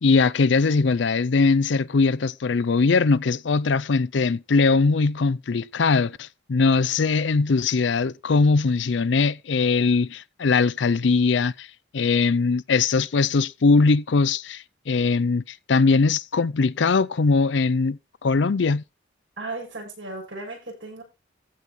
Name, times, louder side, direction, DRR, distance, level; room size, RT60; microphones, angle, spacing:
voice 1, 0.0-11.7 11.9-18.8, left 4 dB, 70° left, 0.5 m, -21 dB
voice 2, 19.4-21.0, right 2 dB, 75° right, 7.3 m, -35 dB
15.0 x 5.4 x 4.6 m
head